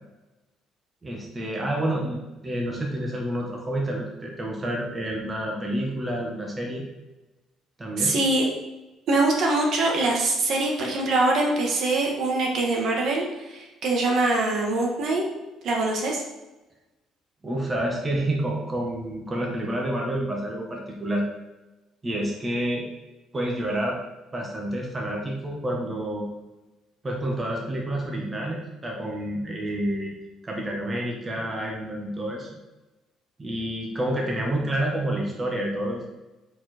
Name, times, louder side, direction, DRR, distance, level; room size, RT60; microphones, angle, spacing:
voice 1, 1.0-6.8 7.8-8.2 17.4-21.2 22.0-22.9 23.3-24.0 24.3-26.3 27.0-30.2 30.4-32.5 33.4-36.1, right 1 dB, 20° right, -1 dB, 1.6 m, -29 dB
voice 2, 8.0-8.4 9.1-15.2 15.6-16.2, right 2 dB, 60° right, 0 dB, 1.7 m, -23 dB
7.3 x 4.9 x 4.5 m, 1.1 s
cardioid pair, 115°, 0 cm